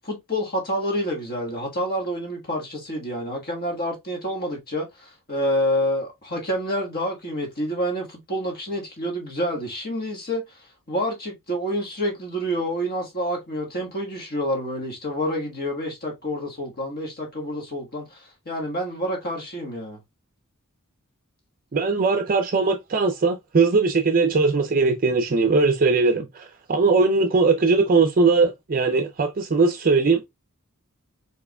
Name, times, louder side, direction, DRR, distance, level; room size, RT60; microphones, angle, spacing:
voice 1, 0.0-10.4 10.9-20.0, equal, 45° left, 1.5 m, -28 dB
voice 2, 21.7-30.2, right 4 dB, 40° right, 0.5 m, -20 dB
4.6 x 4.2 x 2.2 m
head